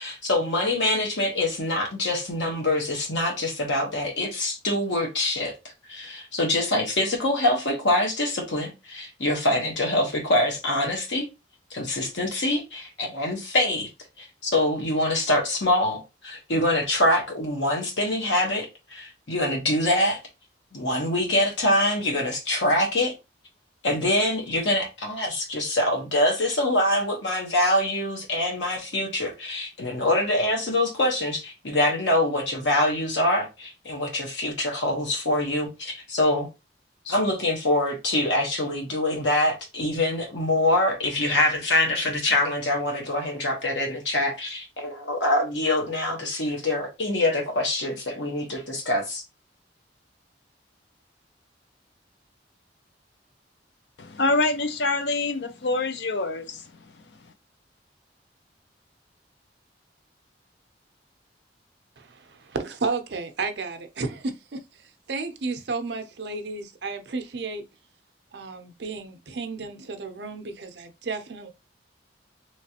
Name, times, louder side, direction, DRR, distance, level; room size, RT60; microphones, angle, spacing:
voice 1, 0.0-5.5 5.9-11.3 11.7-13.9 14.2-20.2 20.7-23.1 23.8-36.5 37.0-49.2, left 1 dB, 90° left, 1.2 m, -25 dB
voice 2, 54.0-56.6, left 2 dB, 70° left, 0.5 m, -25 dB
voice 3, 62.0-64.6 65.1-67.6 68.3-71.5, right 4 dB, 65° right, 0.6 m, -32 dB
3.2 x 3.0 x 2.8 m
head